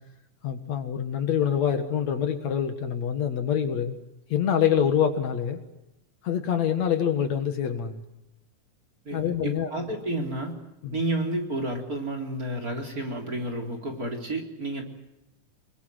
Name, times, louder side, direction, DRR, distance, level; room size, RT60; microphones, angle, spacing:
voice 1, 0.4-4.0 4.3-5.6 6.2-8.0 9.1-9.7 10.8-11.0, left 8 dB, 60° left, 8 dB, 2.8 m, -25 dB
voice 2, 9.1-10.6 10.9-14.8, right 1 dB, 25° right, 3 dB, 3.9 m, -31 dB
27.0 x 22.5 x 7.8 m, 0.90 s
omnidirectional pair, 3.6 m